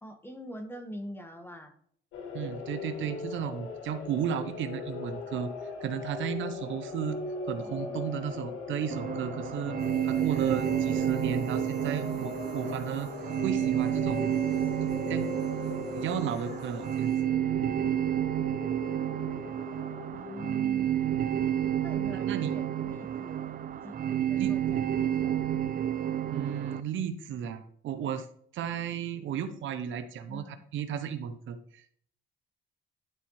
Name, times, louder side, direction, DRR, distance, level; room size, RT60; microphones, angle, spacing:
voice 1, 0.0-1.7 7.6-8.6 20.1-21.2 21.8-23.4 23.8-25.5 30.3-30.6, equal, 10° left, 6 dB, 1.2 m, -45 dB
sound 1, 2.1-20.6, left 4 dB, 90° left, 1.3 m, -40 dB
voice 2, 2.3-5.5 5.8-7.2 7.5-9.8 10.0-13.1 13.4-14.3 15.1-15.4 15.9-17.1 22.1-22.5 24.4-24.7 26.3-28.3 28.5-32.0, right 8 dB, 75° right, 10 dB, 0.7 m, -34 dB
sound 2, 8.9-26.8, right 10 dB, 45° right, 0.4 m, -30 dB
sound 3, 9.8-17.2, left 4 dB, 55° left, 1.7 m, -57 dB
11.0 x 4.1 x 3.1 m, 0.62 s
cardioid pair, 90°, 20 cm